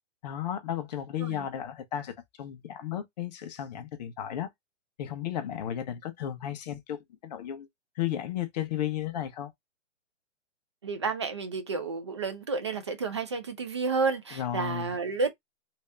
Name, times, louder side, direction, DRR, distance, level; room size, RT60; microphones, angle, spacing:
voice 1, 0.2-4.5 5.0-7.7 8.0-9.5 14.3-14.9, left 11 dB, 35° left, 0.7 m, -34 dB
voice 2, 10.8-15.3, right 4 dB, 25° right, 0.3 m, -31 dB
3.3 x 2.7 x 3.2 m
hypercardioid pair, 150°, 37 cm